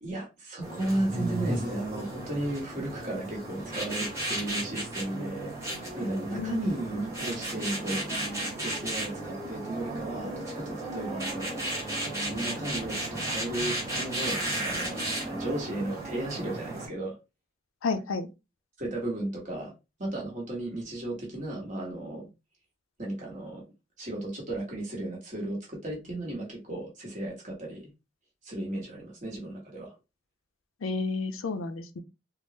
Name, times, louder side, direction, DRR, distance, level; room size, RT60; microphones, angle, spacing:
voice 1, 0.0-8.0 8.6-11.5 12.2-17.2 18.8-19.7 20.0-22.3 23.0-23.6 24.0-27.9 28.4-29.9, right 1 dB, 40° right, 1.1 m, -34 dB
sound 1, 0.6-16.9, right 1 dB, 15° right, 1.2 m, -34 dB
voice 2, 6.3-6.7 17.8-18.3 30.8-32.0, left 4 dB, 80° left, 0.5 m, -31 dB
3.5 x 2.0 x 2.7 m
head